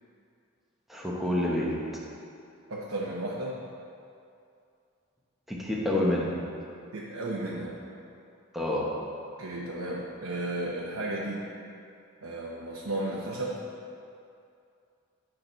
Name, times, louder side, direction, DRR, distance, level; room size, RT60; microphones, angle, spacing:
voice 1, 0.9-1.7 5.5-6.4 8.5-8.9, left 1 dB, ahead, -5 dB, 1.2 m, -28 dB
voice 2, 2.7-3.6 6.9-7.8 9.4-11.4 12.2-13.6, right 1 dB, 85° right, -4 dB, 0.9 m, -34 dB
10.5 x 6.0 x 4.1 m, 2.5 s
head